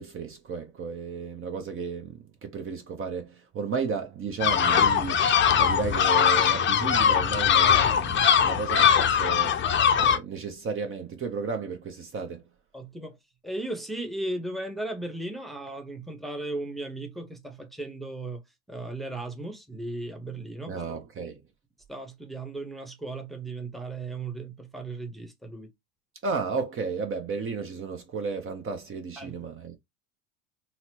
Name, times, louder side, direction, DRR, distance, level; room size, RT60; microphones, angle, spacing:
voice 1, 0.0-12.4 20.7-21.4 26.2-29.7, right 5 dB, 35° right, 0.7 m, -33 dB
sound 1, 4.4-10.2, left 8 dB, 30° left, 0.6 m, -21 dB
voice 2, 12.7-13.2 13.4-18.4 18.7-20.7 21.9-25.7 29.2-29.4, right 2 dB, ahead, 0.9 m, -36 dB
4.1 x 2.0 x 2.8 m
hypercardioid pair, 80°, 38 cm